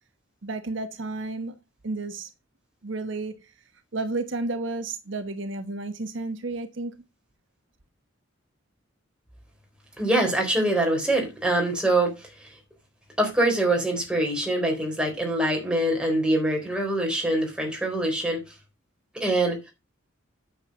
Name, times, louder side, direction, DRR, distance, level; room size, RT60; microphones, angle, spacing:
voice 1, 0.4-1.6 1.8-2.3 2.8-3.5 3.9-6.9, right 2 dB, 65° right, 1.2 m, -32 dB
voice 2, 10.0-12.2 12.4-12.5 13.2-18.4 19.1-19.7, right 1 dB, 5° right, 3.8 m, -24 dB
9.1 x 7.3 x 5.3 m
head